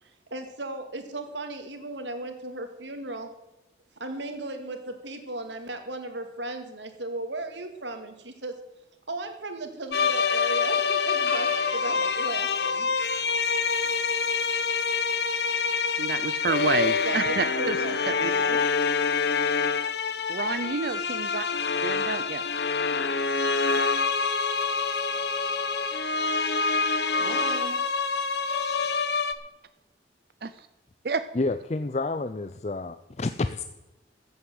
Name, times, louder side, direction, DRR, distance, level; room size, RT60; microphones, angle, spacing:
voice 1, 0.0-3.3 4.0-8.5 9.1-12.9 17.0-18.6 27.2-27.8 28.2-28.3 28.8-28.9, right 2 dB, 90° right, 6 dB, 2.3 m, -36 dB
sound 1, 9.9-29.3, left 5 dB, 70° left, 1.0 m, -26 dB
sound 2, 11.3-17.2, right 2 dB, 5° left, 5.4 m, -45 dB
voice 2, 16.0-17.8 18.1-18.3 20.3-21.4 21.8-22.4 30.4-30.7 31.0-31.2, right 4 dB, 60° right, 12 dB, 0.5 m, -29 dB
voice 3, 31.3-33.6, left 3 dB, 40° left, 11 dB, 0.5 m, -29 dB
14.5 x 8.0 x 7.9 m, 0.99 s
head